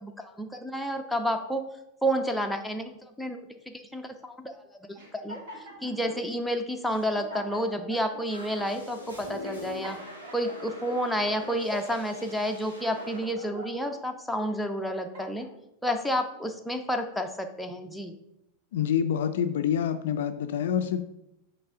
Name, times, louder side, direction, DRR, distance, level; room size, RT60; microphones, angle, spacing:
voice 1, 0.4-1.6 2.0-2.9 3.2-3.4 3.7-4.5 4.9-5.4 5.8-10.0 10.3-15.5 15.8-18.1, equal, ahead, 4 dB, 0.6 m, -30 dB
sound 1, 5.0-6.2 6.8-6.9 7.2-8.2 8.8-9.0 9.4-11.0 11.4-12.2 12.7-13.9 14.5-15.5, right 1 dB, 50° right, 1.9 m, -44 dB
sound 2, 6.9-7.0 7.3-7.6 8.3-13.2, left 2 dB, 85° right, 1.9 m, -43 dB
voice 2, 18.7-21.0, left 8 dB, 55° left, 9 dB, 0.4 m, -27 dB
7.9 x 3.3 x 3.6 m, 0.83 s
figure-of-eight pair, 90°, 0 cm